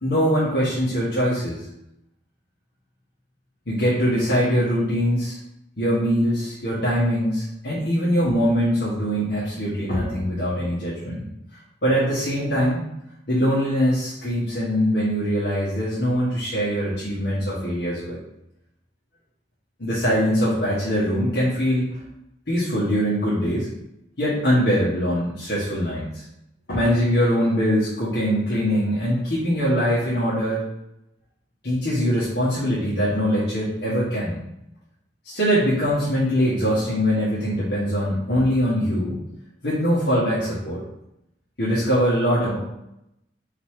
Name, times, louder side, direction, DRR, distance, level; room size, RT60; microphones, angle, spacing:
voice 1, 0.0-1.6 3.7-5.4 5.8-11.3 11.8-12.8 13.3-18.2 19.8-21.9 22.5-23.7 24.2-26.2 26.7-30.6 31.6-34.4 35.2-39.2 39.6-40.8 41.6-42.6, equal, 75° left, -10 dB, 1.8 m, -22 dB
4.9 x 4.1 x 5.0 m, 0.83 s
head